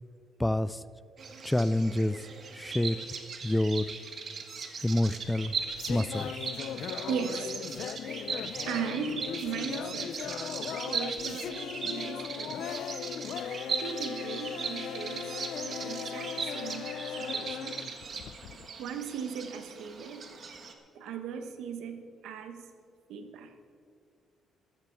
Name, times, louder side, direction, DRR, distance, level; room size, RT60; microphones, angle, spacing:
voice 1, 0.4-0.8 1.4-3.0 3.4-3.9 4.8-5.6 5.9-6.3, left 1 dB, 10° left, 16 dB, 0.5 m, -28 dB
Bird vocalization bird call bird song, 1.2-20.7, right 5 dB, 50° right, 1.6 m, -39 dB
sound 1, 5.2-18.7, left 9 dB, 75° left, 0.4 m, -38 dB
voice 2, 7.1-7.7 8.6-10.2 10.8-12.7 13.8-15.3 15.6-17.8 18.8-20.3 20.9-22.7 23.1-23.5, right 7 dB, 85° right, 8 dB, 1.2 m, -38 dB
14.0 x 13.0 x 4.6 m, 2.2 s
cardioid pair, 90°, 0 cm